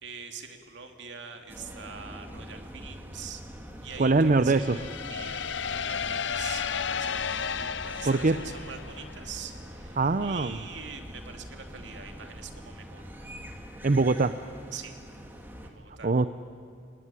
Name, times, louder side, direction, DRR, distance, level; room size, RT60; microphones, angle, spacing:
voice 1, 0.0-13.1 14.7-14.9 15.6-16.1, right 6 dB, 70° right, 5 dB, 2.6 m, -44 dB
sound 1, 1.5-15.7, equal, 10° right, 2.5 m, -44 dB
voice 2, 4.0-4.8 8.1-8.4 10.0-10.6 13.8-14.3 16.0-16.3, right 3 dB, 45° right, 11 dB, 0.6 m, -22 dB
sound 2, 4.6-9.3, left 7 dB, 70° left, 0.7 m, -33 dB
30.0 x 19.0 x 9.8 m, 2.5 s
head